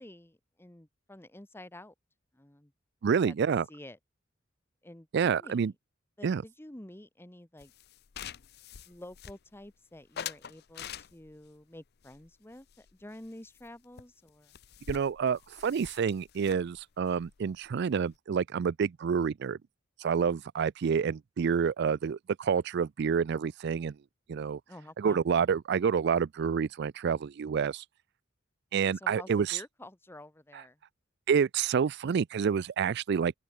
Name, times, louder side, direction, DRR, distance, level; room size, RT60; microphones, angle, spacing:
voice 1, 0.0-1.9 2.3-2.7 3.2-4.0 4.8-5.7 6.2-7.7 8.9-14.6 24.7-25.3 28.9-30.8, left 1 dB, 10° left, 1.1 m, -49 dB
voice 2, 3.0-3.7 5.1-5.7 6.2-6.4 14.9-19.6 20.0-24.0 24.3-24.6 25.0-27.8 28.7-29.6 31.3-33.4, right 6 dB, 60° right, 0.4 m, -28 dB
sound 1, 7.6-9.7 10.1-11.5 12.0-13.3 13.6-13.7 14.0-14.1 14.3-18.1, left 8 dB, 55° left, 0.6 m, -45 dB
open air
head